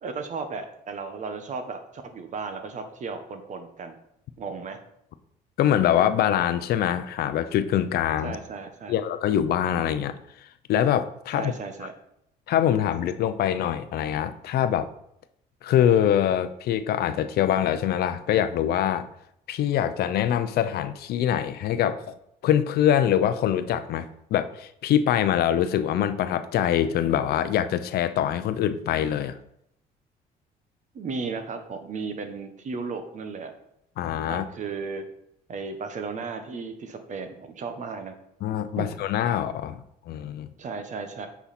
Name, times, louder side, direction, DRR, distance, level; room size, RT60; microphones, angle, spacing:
voice 1, 0.0-4.0 4.4-4.8 8.2-8.9 11.3-11.9 30.9-33.5 34.3-35.1 35.5-38.2 38.8-38.9 40.6-41.3, right 4 dB, 45° right, 7 dB, 1.3 m, -35 dB
voice 2, 5.6-8.4 8.9-10.2 10.7-11.5 12.5-14.9 15.6-19.1 19.5-22.1 22.4-29.4 34.0-34.4 38.4-40.5, left 10 dB, 70° left, 11 dB, 0.6 m, -24 dB
8.2 x 5.6 x 4.3 m, 0.76 s
cardioid pair, 110°, 17 cm